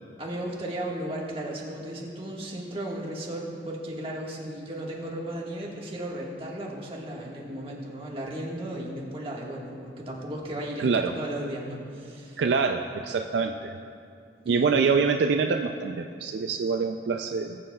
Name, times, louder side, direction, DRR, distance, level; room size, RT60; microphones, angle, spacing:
voice 1, 0.2-12.4 14.4-14.9, right 1 dB, 30° right, -3 dB, 1.5 m, -35 dB
voice 2, 10.8-11.1 12.4-13.8 14.5-17.6, right 5 dB, 70° right, 5 dB, 0.3 m, -25 dB
20.0 x 7.6 x 2.3 m, 2.4 s
head